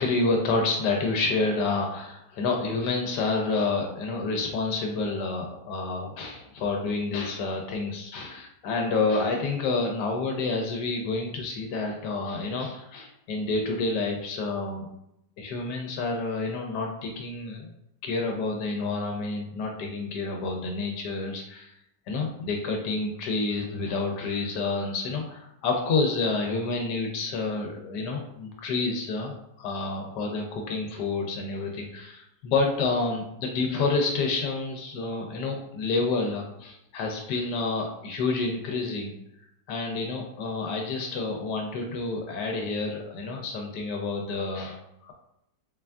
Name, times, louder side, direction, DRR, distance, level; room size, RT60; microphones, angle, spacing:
voice 1, 0.0-14.9 15.4-17.7 18.0-21.7 22.1-39.1 39.7-45.1, left 3 dB, 85° left, 2 dB, 1.2 m, -29 dB
4.0 x 3.4 x 2.3 m, 0.79 s
omnidirectional pair, 1.8 m